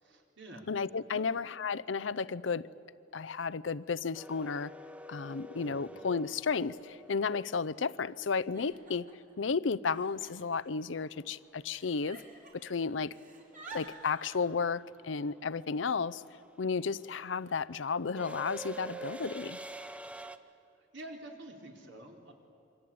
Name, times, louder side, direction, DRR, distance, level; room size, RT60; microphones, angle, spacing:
voice 1, 0.0-0.7 1.1-1.3 5.3-5.8 20.4-20.5 20.9-22.3, right 1 dB, 70° right, 2 dB, 4.1 m, -49 dB
voice 2, 0.7-2.6 3.1-4.7 5.1-9.1 9.4-12.2 12.5-13.1 13.7-16.2 16.6-19.6, left 5 dB, 85° left, 19 dB, 0.6 m, -33 dB
sound 1, 4.1-8.2 10.6-10.7 12.0-12.3 12.6-20.4, right 1 dB, 5° right, 0.8 m, -47 dB
Giggle, 6.7-6.8 7.0-7.6 8.2-9.3 9.9-11.2 11.7-12.7 13.0-14.4, right 4 dB, 45° right, 4.3 m, -51 dB
27.5 x 24.5 x 8.7 m, 2.8 s
head